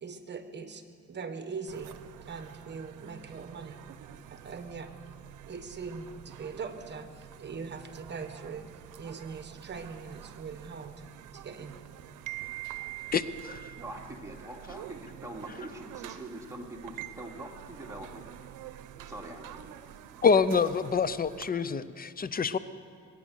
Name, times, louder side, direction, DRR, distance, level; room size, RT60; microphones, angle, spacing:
voice 1, 0.0-0.8 1.1-2.0 2.3-3.8 4.3-4.9 5.5-11.0 11.3-11.8, right 5 dB, 35° right, 8 dB, 1.4 m, -41 dB
sound 1, 1.7-21.5, right 12 dB, 85° right, 0.7 m, -46 dB
voice 2, 13.1-13.7 20.2-22.6, left 5 dB, 30° left, 15 dB, 0.6 m, -26 dB
voice 3, 13.7-18.2 19.1-19.7, right 1 dB, 10° right, -1 dB, 2.5 m, -43 dB
21.5 x 9.3 x 6.5 m, 2.3 s
cardioid pair, 90°, 30 cm